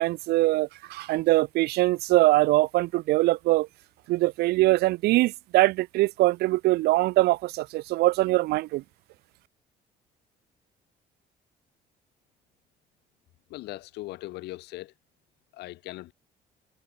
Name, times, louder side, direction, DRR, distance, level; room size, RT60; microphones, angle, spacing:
voice 1, 0.0-3.7 4.1-8.8, right 19 dB, 70° right, 0.4 m, -23 dB
voice 2, 13.5-14.9 15.5-16.1, left 18 dB, 85° left, 2.0 m, -39 dB
cardioid pair, 110°, 17 cm